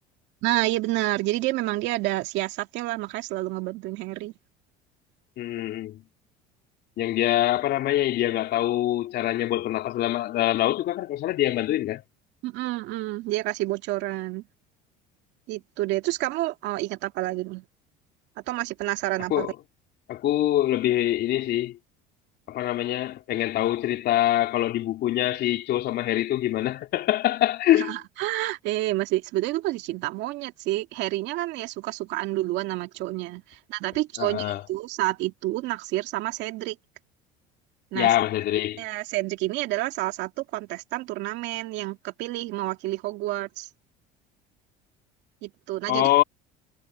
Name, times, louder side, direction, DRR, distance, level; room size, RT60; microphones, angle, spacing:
voice 1, 0.4-4.3 12.4-14.4 15.5-17.6 18.5-19.5 27.7-36.8 37.9-38.1 38.8-43.7 45.4-46.1, right 17 dB, 70° right, 2.1 m, -29 dB
voice 2, 5.4-6.0 7.0-12.0 19.3-19.5 20.1-21.8 22.5-28.0 34.2-34.6 37.9-38.8 45.9-46.2, left 13 dB, 60° left, 3.2 m, -24 dB
supercardioid pair, 90°, 19 cm